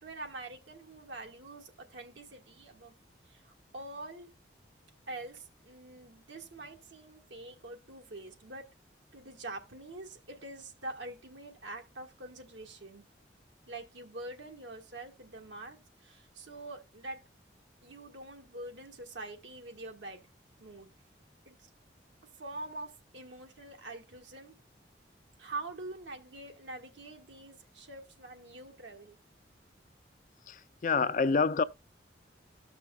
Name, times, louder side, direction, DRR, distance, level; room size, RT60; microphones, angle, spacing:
voice 1, 0.0-2.9 3.3-4.3 5.1-8.7 9.1-13.0 13.7-17.2 17.8-20.2 20.6-20.9 21.4-21.7 22.4-24.6 25.4-29.2, right 2 dB, 85° right, 1.5 m, -45 dB
voice 2, 30.5-31.6, left 4 dB, 45° left, 0.4 m, -27 dB
14.0 x 6.0 x 2.3 m
head